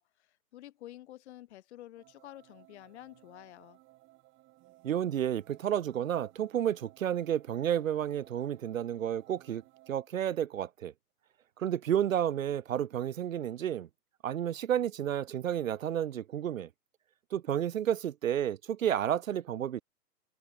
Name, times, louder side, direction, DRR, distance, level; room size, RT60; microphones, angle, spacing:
voice 1, 0.0-3.8, left 14 dB, 45° left, 5.5 m, -50 dB
sound 1, 1.9-9.9, right 19 dB, 25° right, 6.7 m, -61 dB
voice 2, 4.8-10.9 11.6-13.9 14.2-16.7 17.3-19.8, right 10 dB, 55° right, 1.5 m, -31 dB
open air
hypercardioid pair, 140°, 48 cm